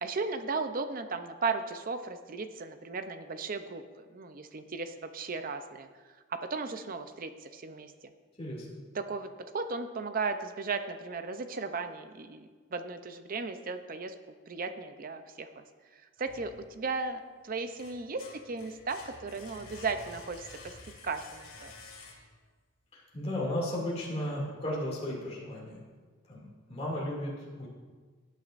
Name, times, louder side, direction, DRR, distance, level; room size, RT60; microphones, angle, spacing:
voice 1, 0.0-3.8 4.1-5.9 6.3-7.9 8.9-14.1 14.5-15.7 16.2-20.8 21.0-21.7, right 4 dB, 40° right, 9 dB, 0.5 m, -36 dB
sound 1, 16.2-17.1 17.5-22.5, left 3 dB, 80° left, 1.9 m, -50 dB
voice 2, 22.9-25.8 26.3-27.7, left 1 dB, 30° left, -5 dB, 2.4 m, -35 dB
18.0 x 9.0 x 2.5 m, 1.4 s
head